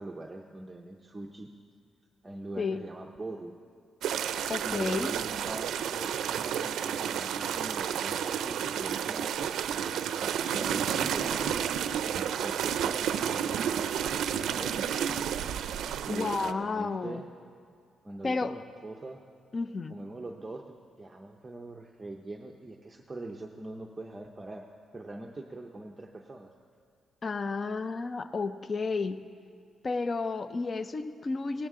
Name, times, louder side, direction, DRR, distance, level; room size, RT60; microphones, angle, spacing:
voice 1, 0.0-1.5 2.2-3.5 4.6-9.6 10.2-11.6 11.9-14.9 16.0-17.2 18.0-19.2 19.9-26.5, right 2 dB, 15° right, 1 dB, 0.6 m, -42 dB
sound 1, 4.0-16.5, right 9 dB, 90° right, 0.5 m, -31 dB
voice 2, 4.5-5.1 16.1-17.2 18.2-18.5 19.5-20.0 27.2-29.2 29.8-31.7, left 4 dB, 30° left, 11 dB, 0.4 m, -32 dB
18.0 x 17.5 x 3.7 m, 2.3 s
wide cardioid pair, 180°, 0 cm